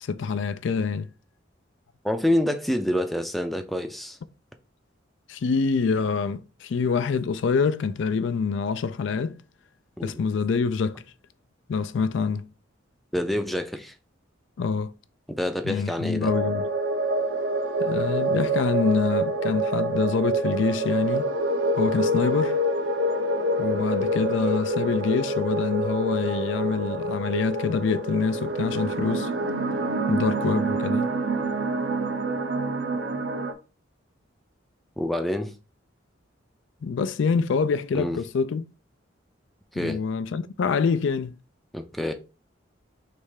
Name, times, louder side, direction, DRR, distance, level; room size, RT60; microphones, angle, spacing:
voice 1, 0.0-1.1 5.3-9.4 10.0-11.0 11.7-12.5 14.6-14.9 15.7-16.7 17.8-21.3 21.8-22.6 23.6-29.3 30.1-31.1 36.8-38.6 39.8-41.3, left 5 dB, 65° left, 0.4 m, -26 dB
voice 2, 2.0-4.2 10.0-10.1 13.1-13.9 15.3-16.3 35.0-35.6 37.9-38.2 39.7-40.0 41.7-42.1, left 1 dB, ahead, 0.4 m, -27 dB
sound 1, 16.2-33.5, right 2 dB, 65° right, 0.7 m, -26 dB
3.3 x 3.2 x 4.8 m
head